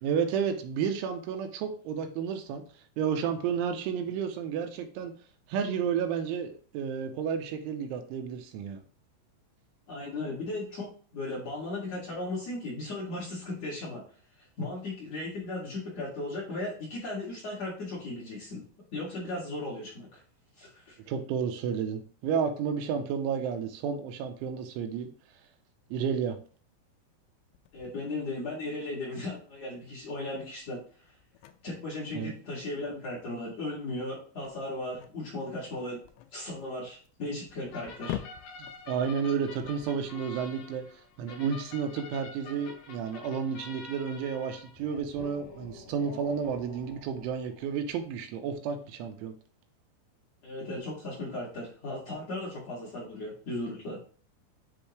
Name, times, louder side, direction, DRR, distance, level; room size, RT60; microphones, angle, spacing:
voice 1, 0.0-2.6 3.0-5.1 5.5-8.8 21.1-25.1 25.9-26.4 32.1-32.3 38.9-40.8 41.2-49.3, right 7 dB, 85° right, 5 dB, 3.1 m, -31 dB
voice 2, 9.9-10.9 11.1-14.0 14.6-18.6 18.9-20.2 20.6-20.9 27.7-30.8 31.6-36.0 36.3-38.2 50.4-54.0, left 2 dB, 45° left, -5 dB, 2.6 m, -36 dB
sound 1, 27.5-40.6, left 13 dB, 85° left, 2.6 m, -47 dB
sound 2, 37.7-48.1, left 3 dB, 60° left, 2.6 m, -47 dB
9.8 x 3.6 x 3.1 m, 0.42 s
omnidirectional pair, 5.6 m